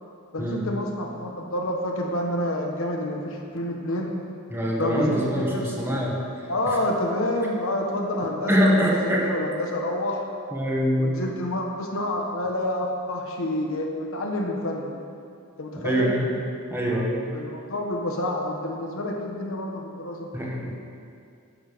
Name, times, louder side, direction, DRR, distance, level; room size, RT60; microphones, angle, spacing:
voice 1, 0.3-4.1 4.8-6.0 6.5-10.3 11.0-14.9 15.6-16.1 17.3-20.3, left 1 dB, 65° left, 1 dB, 1.4 m, -28 dB
voice 2, 4.5-6.5 8.5-9.3 10.5-11.2 15.7-16.3 16.7-17.3 20.3-20.7, equal, 10° right, -3 dB, 1.6 m, -24 dB
10.0 x 7.2 x 6.9 m, 2.4 s
head